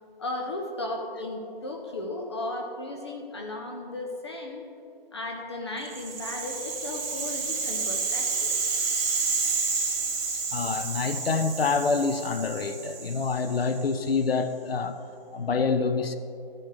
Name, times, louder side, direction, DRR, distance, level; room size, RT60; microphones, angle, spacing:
voice 1, 0.2-4.6 5.1-8.5, left 2 dB, 30° left, 2 dB, 0.7 m, -35 dB
Rattle (instrument), 5.8-14.0, right 4 dB, 45° right, 1.9 m, -30 dB
voice 2, 10.5-15.0 15.3-16.2, left 4 dB, 85° left, 10 dB, 0.8 m, -26 dB
13.0 x 10.5 x 3.3 m, 2.6 s
hypercardioid pair, 165°, 29 cm